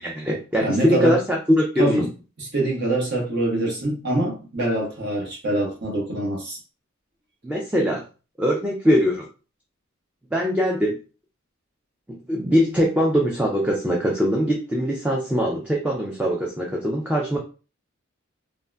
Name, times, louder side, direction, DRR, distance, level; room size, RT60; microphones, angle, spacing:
voice 1, 0.0-2.1 7.4-8.0 8.4-9.2 10.3-10.9 12.1-17.4, equal, 5° right, -1 dB, 0.4 m, -22 dB
voice 2, 0.6-1.2 1.8-2.1 2.4-6.6, right 2 dB, 55° right, 0 dB, 1.0 m, -24 dB
3.6 x 2.1 x 2.2 m, 0.34 s
head